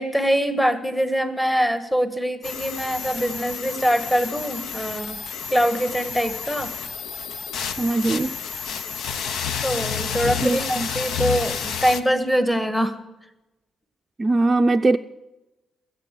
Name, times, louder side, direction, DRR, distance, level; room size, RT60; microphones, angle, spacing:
voice 1, 0.0-5.2 5.5-6.7 9.6-12.9, equal, 5° left, 1.5 m, -23 dB
sound 1, 2.4-12.0, left 7 dB, 70° left, 0.9 m, -30 dB
voice 2, 7.8-8.4 10.4-10.9 14.2-15.0, right 2 dB, 25° right, 0.5 m, -21 dB
20.5 x 8.3 x 8.3 m
cardioid pair, 90°, 0 cm